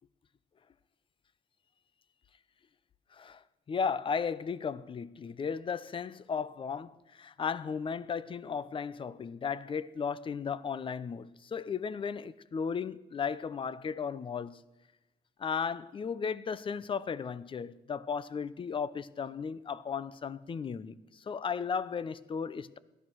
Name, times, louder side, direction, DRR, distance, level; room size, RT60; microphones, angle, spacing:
voice 1, 3.1-3.4 3.7-14.6 15.4-22.8, left 6 dB, 30° left, 0.7 m, -35 dB
17.5 x 12.0 x 6.2 m
cardioid pair, 110°, 17 cm